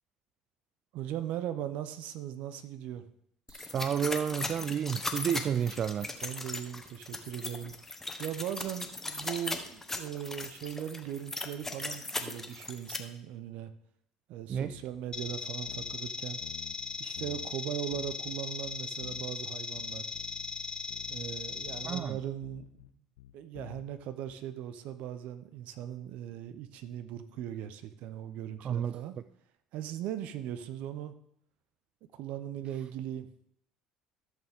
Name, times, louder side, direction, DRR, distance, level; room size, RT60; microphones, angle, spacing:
voice 1, 0.9-3.0 6.2-7.7 8.2-13.7 14.3-16.4 17.0-20.1 21.1-22.6 23.3-29.1 29.7-31.1 32.1-33.3, right 11 dB, 60° right, 0.8 m, -39 dB
sound 1, 3.5-13.0, left 2 dB, 15° left, 1.3 m, -38 dB
voice 2, 3.5-6.1 14.5-14.8 21.8-22.2 28.6-29.0, right 8 dB, 45° right, 0.3 m, -31 dB
sound 2, 14.5-15.0 15.3-15.4 15.7-16.1 16.4-17.6 17.9-19.4 19.7-24.3, left 13 dB, 75° left, 0.5 m, -50 dB
sound 3, 15.1-22.0, left 5 dB, 30° left, 1.4 m, -38 dB
14.0 x 6.6 x 3.7 m
hypercardioid pair, 60°, 3 cm